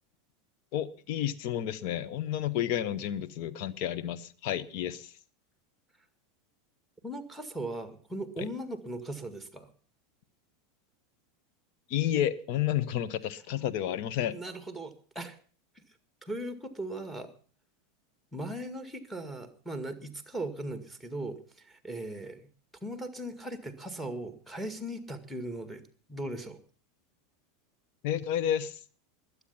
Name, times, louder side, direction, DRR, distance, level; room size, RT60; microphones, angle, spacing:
voice 1, 0.7-5.1 8.4-8.5 11.9-14.4 28.0-28.8, left 11 dB, 50° left, 13 dB, 1.0 m, -31 dB
voice 2, 7.0-9.7 14.3-15.4 16.2-17.3 18.3-22.4 22.8-25.8 26.1-26.6, right 1 dB, ahead, 9 dB, 2.1 m, -38 dB
21.5 x 8.3 x 5.7 m, 0.43 s
figure-of-eight pair, 85°, 0 cm